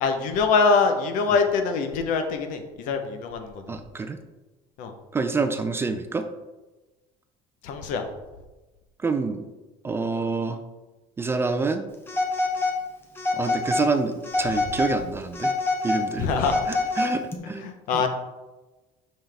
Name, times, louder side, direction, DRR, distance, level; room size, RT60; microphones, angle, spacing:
voice 1, 0.0-3.6 4.8-4.9 7.6-8.0 16.2-16.6 17.6-18.1, left 4 dB, 65° left, 7 dB, 0.9 m, -24 dB
voice 2, 3.7-4.2 5.1-6.3 9.0-9.4 9.8-10.6 11.2-11.9 13.3-15.5 15.8-16.3 16.7-18.0, right 4 dB, 15° right, 8 dB, 0.3 m, -27 dB
Telephone, 12.1-12.8 13.2-13.9 14.2-15.0 15.3-17.4, left 3 dB, 15° left, 0.8 m, -26 dB
5.5 x 5.5 x 3.4 m, 1.1 s
cardioid pair, 140°, 14 cm